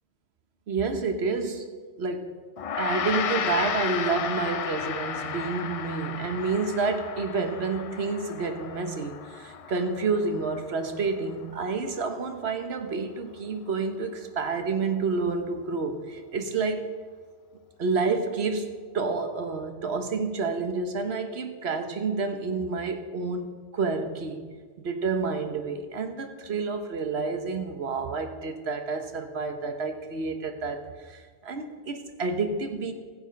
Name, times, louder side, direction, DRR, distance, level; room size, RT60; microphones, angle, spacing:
voice 1, 0.7-1.7 2.0-2.3 2.8-16.9 17.8-24.4 24.8-32.9, right 4 dB, 65° right, 7 dB, 1.3 m, -29 dB
Gong, 2.6-12.1, left 7 dB, 60° left, 0.3 m, -34 dB
15.0 x 8.0 x 5.2 m, 1.5 s
omnidirectional pair, 1.2 m